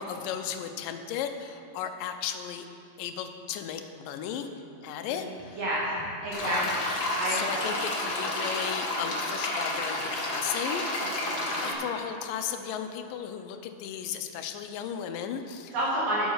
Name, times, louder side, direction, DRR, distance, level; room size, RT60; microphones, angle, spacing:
voice 1, 0.0-2.7 3.0-4.5 4.8-5.6 6.4-6.7 7.3-15.7, left 8 dB, 85° left, 7 dB, 2.4 m, -35 dB
voice 2, 5.6-6.9 7.2-7.7 11.0-11.7 15.7-16.3, right 1 dB, 75° right, -7 dB, 4.1 m, -30 dB
sound 1, 6.3-11.7, left 2 dB, 50° left, 1.2 m, -31 dB
9.6 x 8.2 x 6.4 m, 2.8 s
omnidirectional pair, 3.8 m